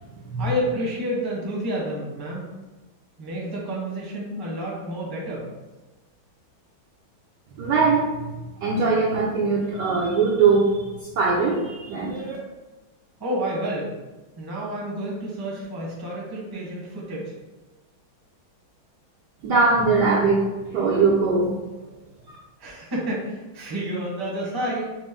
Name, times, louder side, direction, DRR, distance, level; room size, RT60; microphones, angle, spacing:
voice 1, 0.4-2.4 3.2-5.5 12.1-12.3 13.2-13.9 14.4-17.3 22.6-24.8, equal, 20° right, -5 dB, 0.7 m, -29 dB
voice 2, 7.6-12.4 19.4-21.5, right 4 dB, 75° right, -3 dB, 1.0 m, -21 dB
6.1 x 2.1 x 3.6 m, 1.1 s
omnidirectional pair, 2.2 m